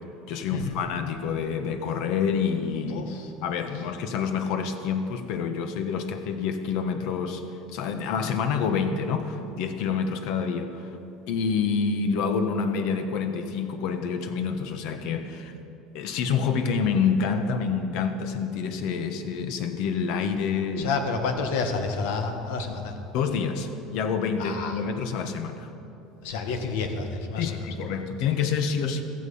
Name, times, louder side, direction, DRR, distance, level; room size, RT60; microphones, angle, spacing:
voice 1, 0.3-3.0 3.4-7.4 7.7-10.9 11.3-15.5 15.9-20.9 23.1-25.7 27.4-29.0, left 6 dB, 65° left, 8 dB, 1.4 m, -27 dB
voice 2, 2.9-3.3 20.8-23.0 24.4-24.8 26.2-27.7, left 4 dB, 90° left, 5 dB, 1.8 m, -29 dB
15.5 x 14.0 x 5.6 m, 2.9 s
cardioid pair, 140°, 0 cm